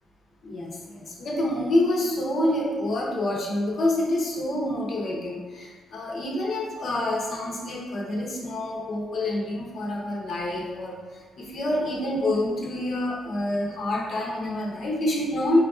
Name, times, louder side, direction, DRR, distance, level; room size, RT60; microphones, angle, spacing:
voice 1, 0.4-11.0 11.4-15.6, left 1 dB, 45° left, -3 dB, 0.7 m, -27 dB
5.0 x 2.3 x 2.5 m, 1.4 s
cardioid pair, 145°, 0 cm